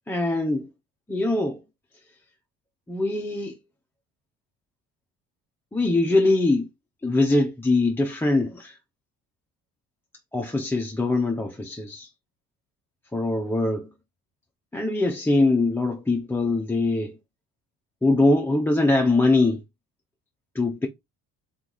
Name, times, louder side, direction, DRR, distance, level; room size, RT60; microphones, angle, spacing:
voice 1, 0.1-0.7 1.1-1.6 2.9-3.5 5.7-6.7 7.0-8.8 10.3-12.1 13.1-13.9 14.7-17.1 18.0-19.6 20.5-20.9, left 2 dB, 5° left, 0.5 m, -22 dB
3.5 x 3.1 x 3.9 m
cardioid pair, 115°, 34 cm